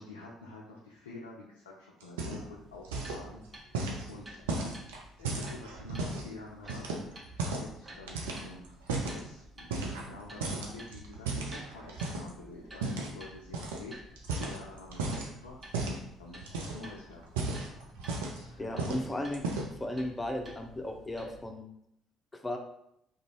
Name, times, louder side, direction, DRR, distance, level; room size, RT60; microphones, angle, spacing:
voice 1, 0.0-3.8 4.1-4.7 5.2-8.8 9.1-14.0 14.3-15.6 16.2-17.2 18.1-19.0, left 3 dB, 80° left, -3 dB, 0.3 m, -48 dB
sound 1, 2.0-2.6 2.8-3.2 3.7-6.3 6.7-7.7 8.1-9.2 9.7-10.2 10.4-12.3 12.8-13.1 13.5-13.8 14.2-15.3 15.7-16.0 16.4-16.9 17.2-18.5 18.8-19.1 19.3-19.8, right 3 dB, 75° right, 0.4 m, -35 dB
sound 2, 2.4-21.5, right 1 dB, 25° right, 0.8 m, -52 dB
voice 2, 18.6-19.4 19.7-21.7 22.4-22.6, left 1 dB, 20° left, 3 dB, 0.5 m, -35 dB
2.5 x 2.3 x 2.9 m, 0.77 s
figure-of-eight pair, 50°, 0 cm